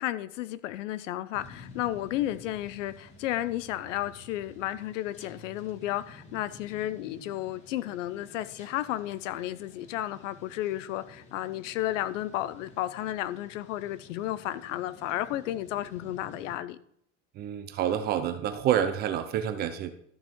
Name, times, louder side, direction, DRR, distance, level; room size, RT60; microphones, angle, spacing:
voice 1, 0.0-16.8, left 14 dB, 80° left, 15 dB, 0.8 m, -33 dB
sound 1, 1.3-16.6, left 2 dB, 20° left, 1.6 m, -52 dB
voice 2, 17.4-19.9, right 10 dB, 25° right, 10 dB, 0.7 m, -28 dB
13.0 x 5.6 x 4.6 m, 0.66 s
supercardioid pair, 170°, 37 cm